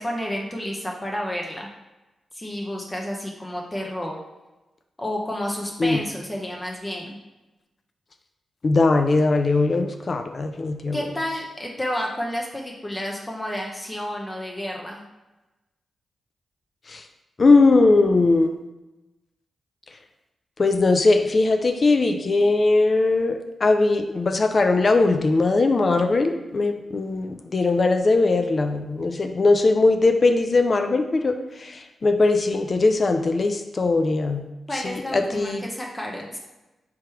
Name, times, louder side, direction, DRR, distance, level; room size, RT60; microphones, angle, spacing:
voice 1, 0.0-1.7 2.3-4.2 5.0-7.2 10.9-15.0 34.7-36.4, equal, 20° left, -1 dB, 0.8 m, -30 dB
voice 2, 8.6-11.0 16.9-17.0 17.4-18.5 20.6-34.4 34.8-35.6, left 3 dB, 50° left, 6 dB, 0.4 m, -20 dB
3.5 x 2.9 x 4.5 m, 1.1 s
supercardioid pair, 40°, 0 cm